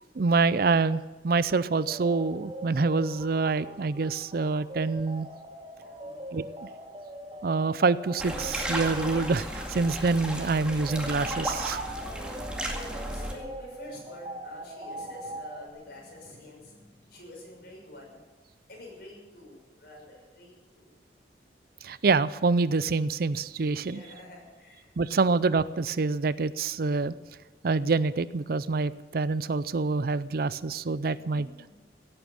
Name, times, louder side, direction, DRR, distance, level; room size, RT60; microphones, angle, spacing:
voice 1, 0.2-5.3 6.3-6.7 7.4-11.8 21.8-24.0 25.0-27.1 27.6-31.5, right 4 dB, 55° right, 17 dB, 0.5 m, -26 dB
sound 1, 1.7-15.7, right 1 dB, 30° right, 1.8 m, -42 dB
sound 2, 8.2-13.3, right 1 dB, 5° right, 2.1 m, -34 dB
voice 2, 12.0-18.2 18.7-20.9 23.8-25.0 31.1-31.7, left 1 dB, 55° left, -1 dB, 6.3 m, -48 dB
16.5 x 8.9 x 8.8 m, 1.3 s
head